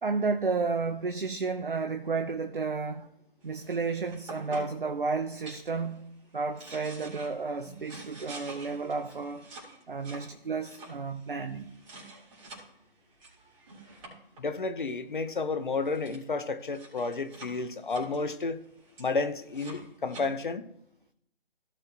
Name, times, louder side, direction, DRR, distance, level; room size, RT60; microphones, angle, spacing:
voice 1, 0.0-3.1 3.4-6.0 6.3-9.5 9.9-11.7, right 4 dB, 60° right, 0.9 m, -32 dB
sound 1, 3.5-4.9 5.4-6.0 6.4-12.6 13.2-14.4 15.4-15.5 15.7-16.2 16.6-20.2, right 2 dB, 35° right, 4.1 m, -48 dB
voice 2, 14.4-18.6 19.0-20.7, left 3 dB, 55° left, 1.0 m, -31 dB
16.5 x 6.6 x 3.0 m
figure-of-eight pair, 145°, 29 cm